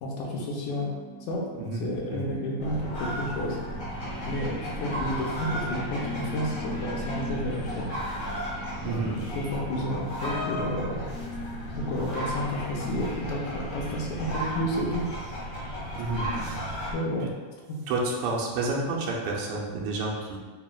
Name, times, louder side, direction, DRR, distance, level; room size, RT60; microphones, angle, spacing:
voice 1, 0.0-0.9 1.3-1.4 1.8-3.6 4.2-7.9 8.9-11.0 11.8-15.1 16.9-17.3, left 1 dB, 85° left, -2 dB, 2.1 m, -31 dB
sound 1, 0.7-10.8, right 3 dB, 55° right, 0.8 m, -46 dB
sound 2, 2.6-16.9, equal, 55° left, 1.2 m, -34 dB
voice 2, 8.8-9.1 16.0-16.6 17.2-17.3 17.9-20.4, right 2 dB, 85° right, -2 dB, 2.1 m, -30 dB
6.9 x 2.3 x 2.2 m, 1.4 s
omnidirectional pair, 3.3 m